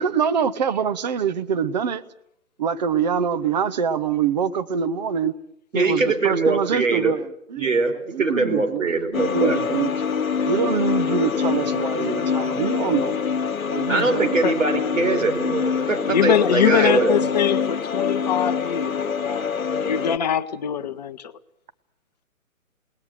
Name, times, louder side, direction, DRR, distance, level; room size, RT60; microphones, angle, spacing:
voice 1, 0.0-2.0 2.6-5.3 5.7-7.7 8.1-9.9 10.5-13.3 13.7-14.4, right 7 dB, 30° right, 1.0 m, -24 dB
voice 2, 5.7-7.1 7.6-9.8 13.9-17.3, right 3 dB, 60° right, 4.3 m, -22 dB
sound 1, 9.1-20.2, left 6 dB, 65° left, 1.2 m, -25 dB
voice 3, 16.0-19.5 19.8-21.3, left 9 dB, 30° left, 0.9 m, -23 dB
28.0 x 19.5 x 6.8 m
figure-of-eight pair, 135°, 43 cm